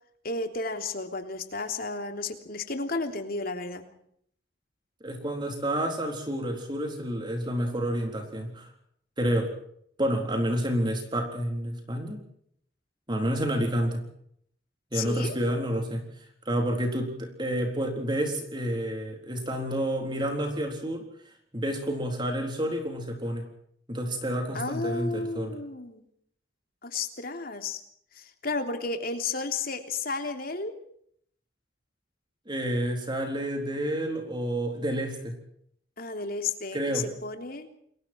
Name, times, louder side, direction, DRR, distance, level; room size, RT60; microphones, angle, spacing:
voice 1, 0.2-3.8 14.9-15.4 24.5-26.0 26.8-27.8 28.1-30.7 36.0-37.7, left 3 dB, 50° left, 6 dB, 3.3 m, -32 dB
voice 2, 5.0-8.7 9.2-9.5 10.0-12.2 13.1-14.0 14.9-16.0 16.5-23.4 23.9-25.6 32.5-35.4 36.7-37.1, equal, 25° right, 3 dB, 3.9 m, -29 dB
30.0 x 22.5 x 4.6 m, 0.67 s
head